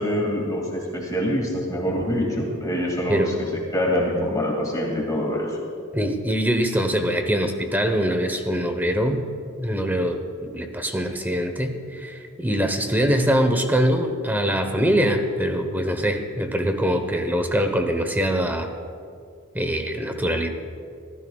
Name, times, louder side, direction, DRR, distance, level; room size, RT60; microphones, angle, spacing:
voice 1, 0.0-3.3 3.7-5.6, equal, 15° left, -2 dB, 2.3 m, -25 dB
voice 2, 5.9-9.3 9.6-18.7 19.5-20.5, equal, 10° right, 6 dB, 1.0 m, -23 dB
27.0 x 15.0 x 2.4 m, 2.3 s
head